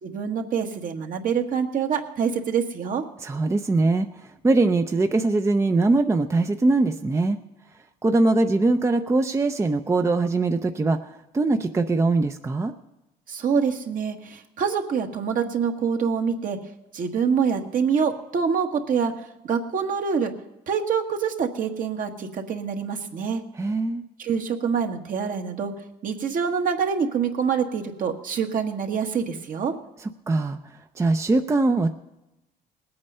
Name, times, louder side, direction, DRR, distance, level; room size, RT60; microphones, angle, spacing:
voice 1, 0.0-3.0 13.3-16.6 16.9-19.1 19.4-20.3 20.7-23.4 24.2-25.7 26.0-29.7, right 6 dB, 55° right, 4 dB, 1.5 m, -25 dB
voice 2, 3.2-7.4 8.0-12.7 23.5-24.0 30.3-31.9, right 3 dB, 15° right, 7 dB, 0.6 m, -22 dB
19.5 x 8.7 x 5.5 m, 0.97 s
cardioid pair, 110°, 17 cm